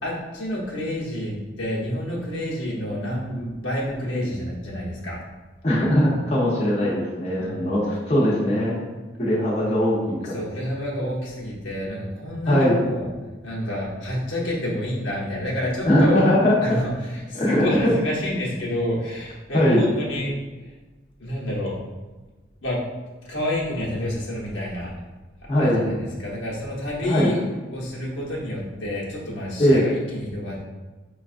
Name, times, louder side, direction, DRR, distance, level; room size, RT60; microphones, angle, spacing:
voice 1, 0.0-5.2 7.4-7.6 10.3-13.1 13.4-16.3 16.6-20.4 21.2-21.8 22.6-22.8 23.3-24.9 25.6-27.4 27.7-30.6, left 1 dB, 75° left, -5 dB, 1.0 m, -29 dB
voice 2, 5.6-8.8 9.2-10.4 12.5-12.8 15.9-16.8 17.4-17.9 19.5-19.8 25.5-25.9 27.0-27.3 29.6-29.8, equal, 35° left, -7 dB, 0.8 m, -20 dB
5.8 x 2.3 x 2.5 m, 1.2 s
head